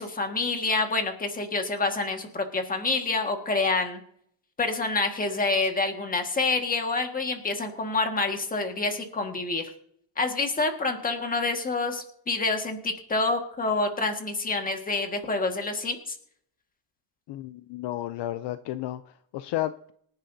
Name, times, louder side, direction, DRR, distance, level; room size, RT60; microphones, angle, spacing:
voice 1, 0.0-4.0 4.6-9.7 10.2-16.1, left 3 dB, 15° left, 4 dB, 1.7 m, -27 dB
voice 2, 17.3-19.9, left 14 dB, 60° left, 12 dB, 0.6 m, -32 dB
26.5 x 10.5 x 2.7 m, 0.67 s
cardioid pair, 175°, 47 cm